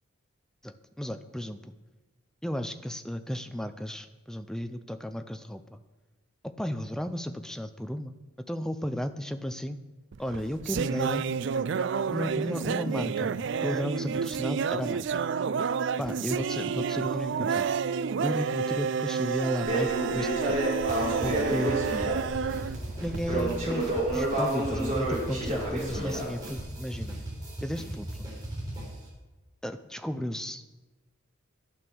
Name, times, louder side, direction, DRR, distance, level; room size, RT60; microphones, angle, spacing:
voice 1, 0.6-1.7 2.4-5.8 6.6-8.2 8.5-9.8 10.2-11.2 12.1-13.3 13.6-15.2 16.0-17.7 18.2-20.6 21.2-22.0 23.0-23.8 24.1-27.2 27.6-28.3 29.6-30.6, equal, 5° left, 9 dB, 0.5 m, -34 dB
sound 1, 10.1-23.6, right 6 dB, 60° right, 0.4 m, -30 dB
Crackle, 19.6-26.6, right 1 dB, 35° right, 5.1 m, -30 dB
sound 2, 20.9-29.1, right 1 dB, 20° right, 4.0 m, -38 dB
12.0 x 9.0 x 6.3 m, 1.2 s
head